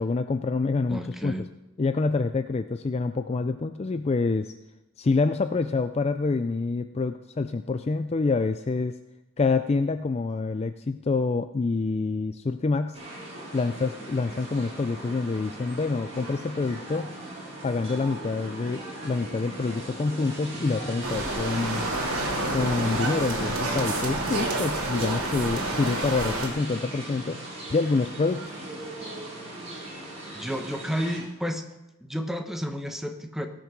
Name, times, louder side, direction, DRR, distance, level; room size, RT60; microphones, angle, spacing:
voice 1, 0.0-1.3 1.8-4.5 5.0-9.0 9.4-13.0 13.5-17.1 17.6-21.9 22.5-27.4 27.7-28.7, left 3 dB, 30° left, 10 dB, 0.3 m, -27 dB
voice 2, 0.9-1.5 30.3-31.7 32.0-33.5, equal, ahead, 6 dB, 0.9 m, -31 dB
sound 1, 12.9-31.2, right 1 dB, 30° right, 4.8 m, -38 dB
sound 2, 21.0-26.5, right 2 dB, 80° right, 2.8 m, -29 dB
18.0 x 6.6 x 6.0 m, 0.97 s
head